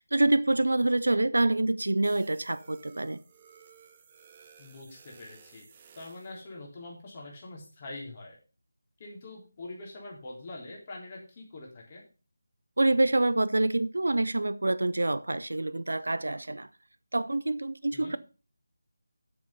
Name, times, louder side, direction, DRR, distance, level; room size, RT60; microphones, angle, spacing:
voice 1, 0.0-3.2 12.8-16.7 17.1-18.2, right 2 dB, 65° right, 16 dB, 0.6 m, -26 dB
sound 1, 2.0-6.4, right 7 dB, 25° right, 0.8 m, -56 dB
voice 2, 4.6-5.6 6.0-8.4 9.0-12.0 17.9-18.2, left 2 dB, 30° left, -1 dB, 3.6 m, -44 dB
8.4 x 7.2 x 5.6 m, 0.34 s
figure-of-eight pair, 160°, 0 cm